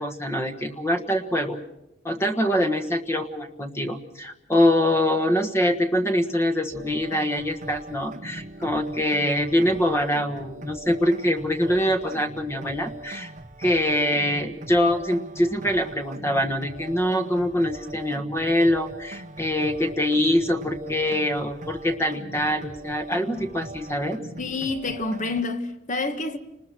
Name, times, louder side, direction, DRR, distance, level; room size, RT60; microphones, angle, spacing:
voice 1, 0.0-1.6 2.0-13.3 13.6-24.2, left 1 dB, 15° left, 1.4 m, -24 dB
sound 1, 6.7-25.4, right 2 dB, 40° right, 1.0 m, -41 dB
voice 2, 24.4-26.4, left 3 dB, 40° left, 1.7 m, -28 dB
30.0 x 20.0 x 6.2 m
head